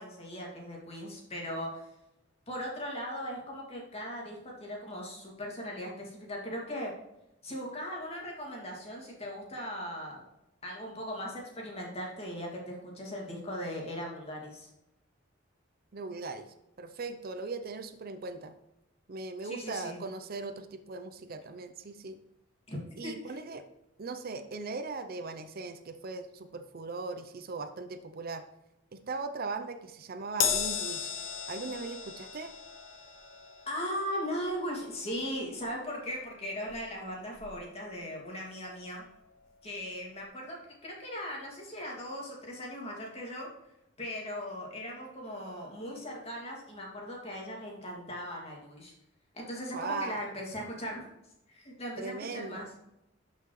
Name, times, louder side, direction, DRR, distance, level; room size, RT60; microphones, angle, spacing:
voice 1, 0.0-1.9 2.5-6.9 7.4-10.2 10.6-14.7 19.4-20.0 22.7-23.4 33.7-39.0 39.6-43.5 44.0-48.9 49.3-51.1 51.5-52.7, equal, 30° left, -2 dB, 2.4 m, -38 dB
voice 2, 15.9-16.5 16.8-18.5 19.1-22.2 23.0-23.6 24.0-28.4 28.9-31.1 31.5-32.5 49.7-50.2 52.0-52.7, right 3 dB, 50° right, 9 dB, 0.6 m, -39 dB
Crash cymbal, 30.4-37.0 37.4-37.6 38.6-38.7, left 7 dB, 85° left, 0.9 m, -36 dB
12.5 x 5.7 x 3.2 m, 0.88 s
head